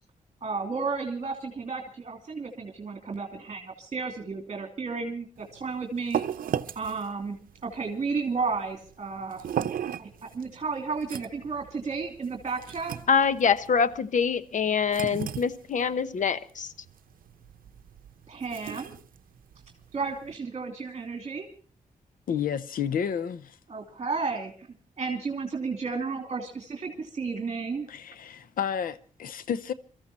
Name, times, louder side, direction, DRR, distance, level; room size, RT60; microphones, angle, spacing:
voice 1, 0.4-6.2 6.7-7.4 7.6-9.5 10.0-12.9 18.3-18.9 19.9-21.5 23.7-24.7 25.0-27.9, right 4 dB, 40° right, 2.8 m, -33 dB
sound 1, 5.4-20.4, right 9 dB, 80° right, 0.7 m, -37 dB
voice 2, 13.1-16.7, left 6 dB, 60° left, 1.0 m, -25 dB
voice 3, 22.3-23.6 27.9-29.7, left 8 dB, 85° left, 0.7 m, -31 dB
24.0 x 14.0 x 4.2 m
cardioid pair, 100°, 14 cm